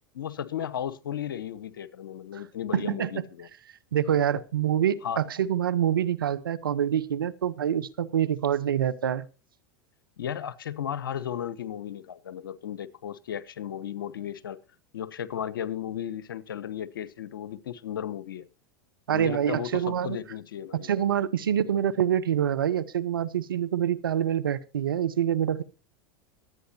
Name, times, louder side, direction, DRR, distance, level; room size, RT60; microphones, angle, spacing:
voice 1, 0.1-3.5 5.0-5.2 10.2-14.6 14.9-18.5 19.1-20.9, left 9 dB, 85° left, 1.0 m, -35 dB
voice 2, 2.7-3.1 3.9-9.3 19.1-20.2 20.7-25.6, right 9 dB, 85° right, 1.0 m, -26 dB
24.0 x 9.1 x 2.8 m
hypercardioid pair, 95°, 11 cm